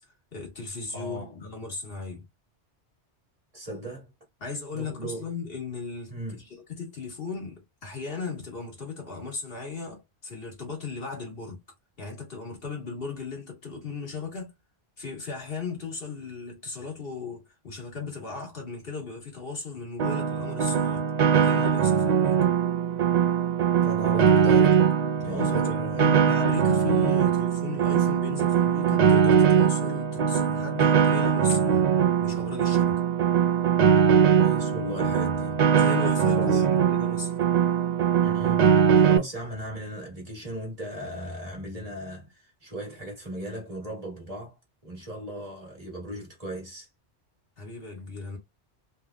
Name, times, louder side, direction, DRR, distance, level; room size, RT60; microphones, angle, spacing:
voice 1, 0.0-2.2 4.4-11.6 12.0-14.5 15.0-21.0 21.3-22.4 25.2-31.9 32.2-33.0 35.7-37.3 47.6-48.4, left 4 dB, 55° left, 1.6 m, -37 dB
voice 2, 0.9-1.3 3.5-4.1 4.7-5.3 6.1-6.4 23.8-24.8 25.2-26.1 34.3-35.6 36.3-36.6 38.2-38.7 39.0-44.5 44.8-46.9, right 1 dB, 35° right, 1.5 m, -37 dB
Piano, 20.0-39.2, right 8 dB, 55° right, 0.4 m, -21 dB
3.4 x 3.2 x 2.3 m
omnidirectional pair, 1.1 m